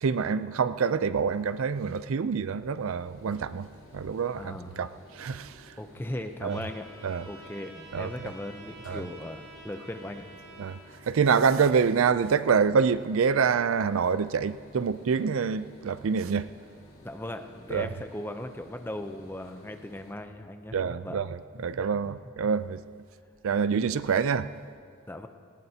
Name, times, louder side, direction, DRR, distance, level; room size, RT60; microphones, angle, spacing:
voice 1, 0.0-5.8 6.4-6.6 7.0-7.3 7.9-8.1 8.9-9.0 10.6-16.5 17.7-17.9 20.7-22.8 23.4-24.5, right 6 dB, 65° right, 0.4 m, -26 dB
sound 1, 2.4-20.1, equal, 65° left, 2.3 m, -54 dB
voice 2, 4.4-4.9 5.8-6.9 7.3-10.3 17.0-21.2 25.1-25.3, left 1 dB, 10° left, 0.5 m, -38 dB
Trumpet, 6.5-10.8, right 2 dB, 45° right, 2.8 m, -49 dB
19.0 x 18.5 x 2.8 m
head